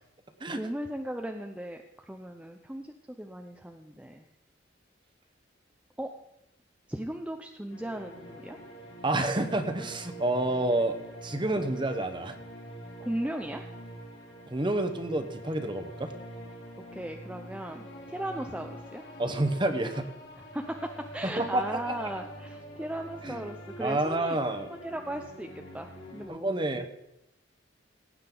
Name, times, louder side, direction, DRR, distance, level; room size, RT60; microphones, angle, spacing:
voice 1, 0.5-4.3 6.0-6.1 6.9-8.6 13.0-13.7 16.9-19.0 20.5-24.4 24.7-26.9, right 1 dB, 5° right, 3 dB, 0.5 m, -37 dB
earth music by kris, 7.7-26.3, equal, 80° left, 3.4 m, -45 dB
voice 2, 9.0-12.4 14.5-16.1 19.2-20.1 21.2-22.0 23.2-23.5 23.8-24.7 26.3-26.9, right 2 dB, 25° right, 7 dB, 1.0 m, -29 dB
18.0 x 8.8 x 3.9 m, 0.84 s
head